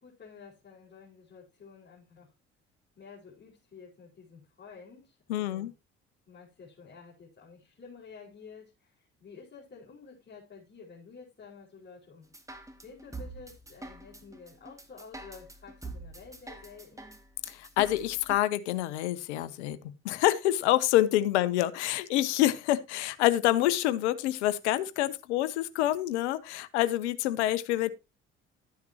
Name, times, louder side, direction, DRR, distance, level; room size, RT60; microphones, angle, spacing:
voice 1, 0.0-2.3 3.0-5.7 6.3-12.3 12.8-17.2 21.4-21.6, left 5 dB, 30° left, 5.2 m, -51 dB
voice 2, 5.3-5.7 17.6-19.8 20.0-27.9, left 14 dB, 75° left, 0.9 m, -27 dB
sound 1, 12.3-18.4, right 2 dB, 10° right, 2.0 m, -45 dB
12.5 x 9.4 x 2.9 m
figure-of-eight pair, 50°, 34 cm